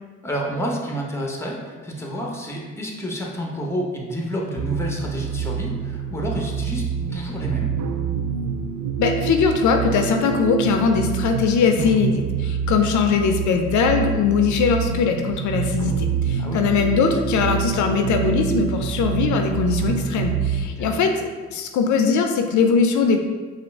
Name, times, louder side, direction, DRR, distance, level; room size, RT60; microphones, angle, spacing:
voice 1, 0.2-7.7 16.4-16.6 20.8-20.9, equal, 10° left, -1 dB, 0.8 m, -29 dB
sound 1, 4.6-20.7, right 7 dB, 90° right, 0.5 m, -26 dB
voice 2, 9.0-21.2 21.5-23.2, left 5 dB, 75° left, 5 dB, 0.5 m, -20 dB
5.1 x 2.4 x 3.4 m, 1.4 s
cardioid pair, 90°, 30 cm